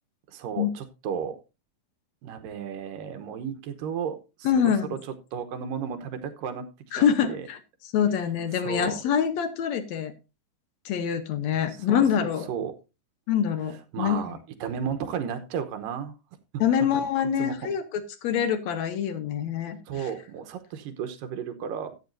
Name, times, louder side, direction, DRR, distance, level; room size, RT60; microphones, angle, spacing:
voice 1, 0.3-1.4 2.2-4.2 4.6-5.0 5.3-6.7 7.0-7.5 8.6-9.0 11.9-12.7 13.9-16.1 16.9-17.6 19.9-22.0, right 7 dB, 80° right, 8 dB, 2.7 m, -33 dB
voice 2, 4.4-5.0 6.9-7.6 7.9-10.1 10.9-12.5 13.3-14.2 16.6-20.1, left 8 dB, 65° left, 10 dB, 2.0 m, -25 dB
13.5 x 8.2 x 2.6 m, 0.28 s
omnidirectional pair, 3.9 m